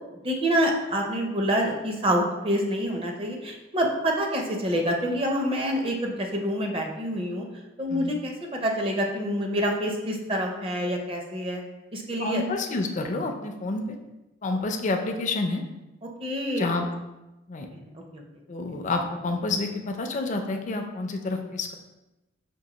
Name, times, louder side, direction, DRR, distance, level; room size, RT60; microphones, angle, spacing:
voice 1, 0.2-7.5 7.8-11.6 11.9-12.4 16.2-16.7 17.7-18.2, equal, 30° right, 2 dB, 0.5 m, -27 dB
voice 2, 12.2-13.8 14.4-15.6 16.6-16.9 17.5-17.7 18.5-21.7, left 3 dB, 40° left, 4 dB, 0.4 m, -28 dB
5.3 x 2.6 x 2.9 m, 1.0 s
head